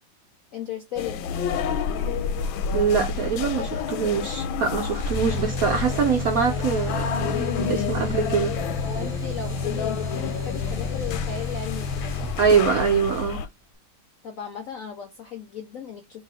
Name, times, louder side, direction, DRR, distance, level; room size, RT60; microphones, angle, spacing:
voice 1, 0.5-1.3 8.8-12.3 14.2-16.2, left 7 dB, 70° left, 0.8 m, -36 dB
sound 1, 1.0-13.5, left 6 dB, 90° left, 1.4 m, -29 dB
voice 2, 2.7-8.5 12.4-13.5, right 6 dB, 70° right, 0.8 m, -24 dB
sound 2, 4.9-12.9, left 3 dB, 20° right, 1.0 m, -31 dB
3.1 x 2.9 x 4.6 m
omnidirectional pair, 2.1 m